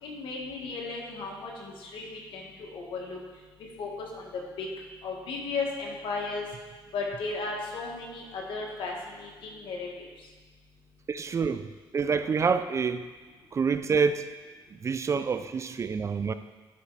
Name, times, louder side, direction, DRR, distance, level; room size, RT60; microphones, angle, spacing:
voice 1, 0.0-3.2 3.8-4.7 5.0-6.5 6.9-10.0, left 3 dB, 70° left, -1 dB, 1.6 m, -35 dB
voice 2, 11.1-13.0 13.5-14.3 14.7-16.3, right 5 dB, 35° right, 11 dB, 0.3 m, -27 dB
11.0 x 4.3 x 4.0 m, 1.3 s
cardioid pair, 90°, 9 cm